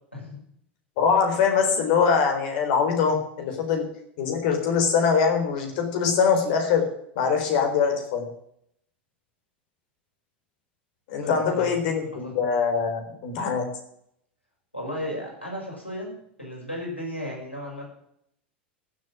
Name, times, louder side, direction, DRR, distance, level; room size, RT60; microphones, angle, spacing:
voice 1, 1.0-3.9 4.2-6.9 7.2-8.3 11.1-13.7, left 6 dB, 50° left, 4 dB, 4.0 m, -23 dB
voice 2, 11.2-11.7 12.2-12.3 14.7-16.1 16.4-17.9, equal, 90° left, -2 dB, 6.1 m, -34 dB
15.0 x 7.7 x 7.8 m, 0.71 s
figure-of-eight pair, 80°, 6 cm